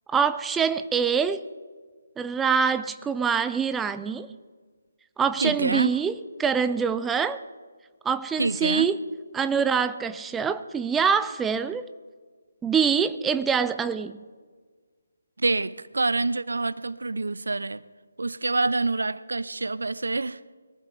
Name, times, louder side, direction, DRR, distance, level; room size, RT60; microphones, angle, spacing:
voice 1, 0.1-1.4 2.2-4.3 5.2-7.4 8.0-9.0 9.3-11.9 12.6-14.2, right 6 dB, 10° right, 0.4 m, -25 dB
voice 2, 5.4-5.9 8.4-8.8 15.4-17.8 18.2-20.4, right 3 dB, 70° right, 0.6 m, -26 dB
22.5 x 14.5 x 3.5 m
figure-of-eight pair, 150°, 0 cm